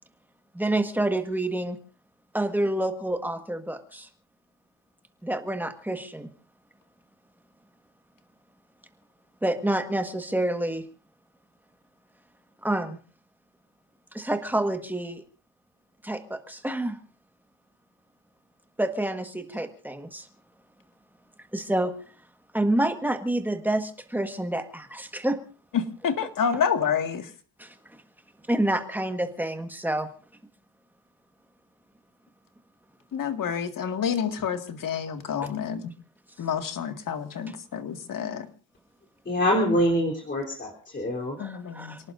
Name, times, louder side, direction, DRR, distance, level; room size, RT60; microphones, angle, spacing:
voice 1, 0.5-1.8 2.3-4.1 5.2-6.3 9.4-10.8 12.6-13.0 14.1-15.2 16.0-17.0 18.8-20.2 21.5-21.9 22.5-25.4 27.6-27.7 28.5-30.1 41.4-42.0, right 1 dB, 5° right, 7 dB, 1.5 m, -28 dB
voice 2, 25.7-27.2 33.1-35.8 36.4-38.5 41.4-42.0, left 7 dB, 45° left, 7 dB, 2.0 m, -28 dB
voice 3, 39.3-41.4, equal, 25° left, -1 dB, 3.6 m, -25 dB
29.0 x 18.5 x 2.6 m, 0.39 s
cardioid pair, 160°, 45 cm